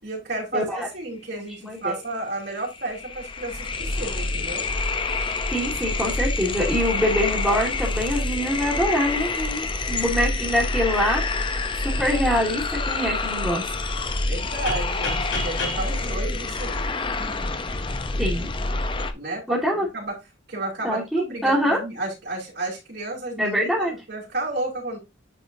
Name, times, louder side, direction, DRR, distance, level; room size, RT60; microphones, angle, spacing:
voice 1, 0.0-4.6 14.3-16.9 19.1-19.4 19.7-20.2 20.5-25.0, right 2 dB, 50° right, -4 dB, 4.1 m, -32 dB
voice 2, 0.5-0.9 1.6-2.0 5.5-11.2 11.7-13.7 18.2-18.5 19.5-19.9 20.8-21.8 23.4-23.9, equal, ahead, -8 dB, 2.9 m, -24 dB
sound 1, 2.1-2.2 2.4-19.1, left 3 dB, 25° left, 0.6 m, -27 dB
sound 2, 14.7-17.4, left 2 dB, 70° left, 3.8 m, -33 dB
9.8 x 4.9 x 2.7 m, 0.23 s
head